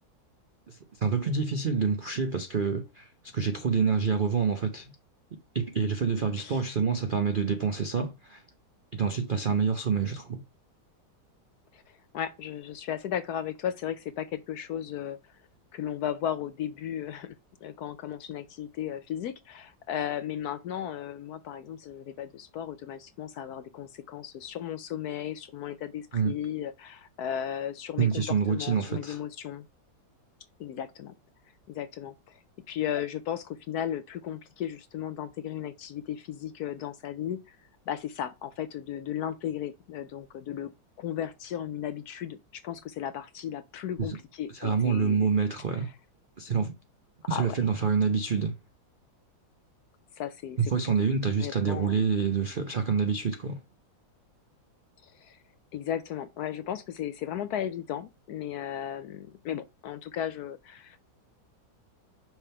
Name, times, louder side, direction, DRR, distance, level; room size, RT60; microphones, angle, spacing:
voice 1, 0.7-4.9 5.5-8.4 8.9-10.4 26.1-26.3 28.0-29.2 44.0-44.2 44.5-45.9 46.4-46.7 47.3-48.5 50.6-53.6, right 5 dB, 85° right, 0.4 m, -27 dB
voice 2, 12.1-15.4 15.7-17.4 17.6-29.6 30.6-31.1 31.7-37.6 37.9-40.7 41.0-45.3 45.7-45.8 47.3-47.6 50.2-50.9 51.4-52.0 55.0-55.4 55.7-61.0, left 10 dB, 70° left, 1.0 m, -35 dB
6.1 x 3.4 x 5.4 m
omnidirectional pair, 2.1 m